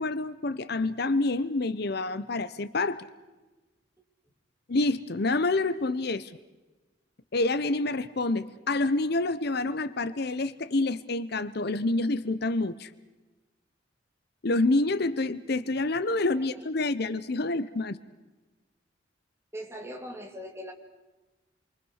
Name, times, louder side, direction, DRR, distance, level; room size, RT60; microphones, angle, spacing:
voice 1, 0.0-3.1 4.7-6.3 7.3-12.9 14.4-18.0, left 2 dB, 55° left, 14 dB, 0.8 m, -27 dB
voice 2, 19.5-20.7, equal, 15° right, 2 dB, 3.0 m, -40 dB
28.0 x 23.5 x 6.5 m, 1.2 s
head